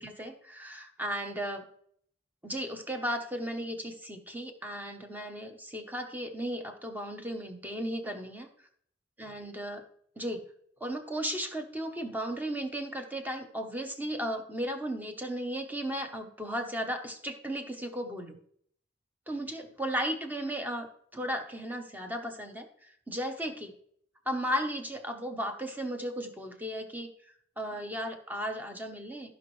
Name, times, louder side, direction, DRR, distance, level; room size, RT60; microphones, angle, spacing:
voice 1, 0.0-1.7 2.4-8.5 9.2-9.8 10.2-10.4 10.8-18.4 19.3-20.9 21.1-23.7 24.3-27.1 27.6-29.4, equal, 10° right, 5 dB, 0.9 m, -35 dB
14.0 x 5.3 x 3.2 m, 0.65 s
head